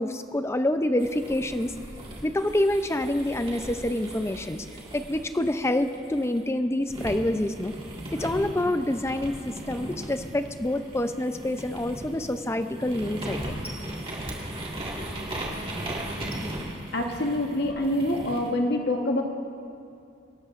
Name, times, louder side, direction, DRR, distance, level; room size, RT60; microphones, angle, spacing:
voice 1, 0.0-1.7 2.2-4.7 4.9-7.7 8.1-13.5, left 1 dB, 15° left, 9 dB, 0.5 m, -27 dB
sound 1, 1.0-6.4 6.9-18.5, right 1 dB, 30° right, 1.8 m, -37 dB
voice 2, 16.9-19.2, left 1 dB, 55° left, 2 dB, 1.2 m, -26 dB
25.5 x 12.0 x 2.5 m, 2.5 s
head